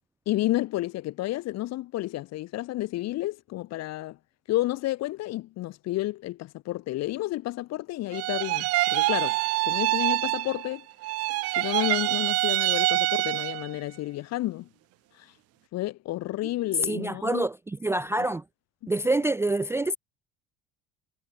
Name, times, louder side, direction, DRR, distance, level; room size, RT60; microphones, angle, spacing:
voice 1, 0.3-4.2 4.5-9.4 9.6-10.9 11.6-14.7 15.2-15.3 15.7-17.5, left 16 dB, 55° left, 2.6 m, -31 dB
sound 1, 8.1-10.8 11.0-13.8, right 19 dB, 50° right, 0.7 m, -26 dB
voice 2, 16.8-18.4 18.9-20.0, right 2 dB, 10° right, 0.5 m, -26 dB
hypercardioid pair, 65°, 31 cm